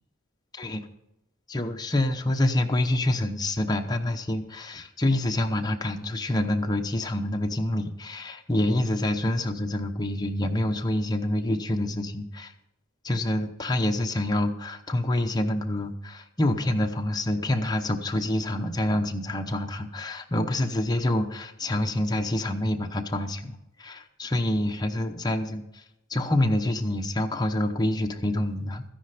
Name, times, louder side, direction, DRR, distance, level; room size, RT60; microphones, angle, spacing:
voice 1, 1.5-12.5 13.0-25.8 26.1-28.8, left 1 dB, 20° left, 4 dB, 0.9 m, -27 dB
13.5 x 10.0 x 5.0 m, 0.92 s
head